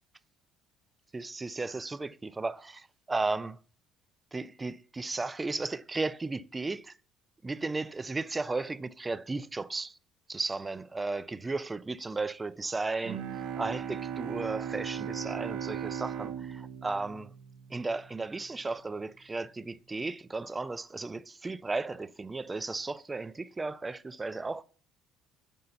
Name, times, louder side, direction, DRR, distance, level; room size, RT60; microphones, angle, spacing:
voice 1, 1.1-3.6 4.3-7.0 7.4-10.0 10.3-17.3 17.7-24.6, right 3 dB, 15° right, 0.3 m, -35 dB
Bowed string instrument, 13.0-18.2, right 9 dB, 75° right, 0.7 m, -37 dB
5.4 x 4.0 x 5.6 m
cardioid pair, 110°, 0 cm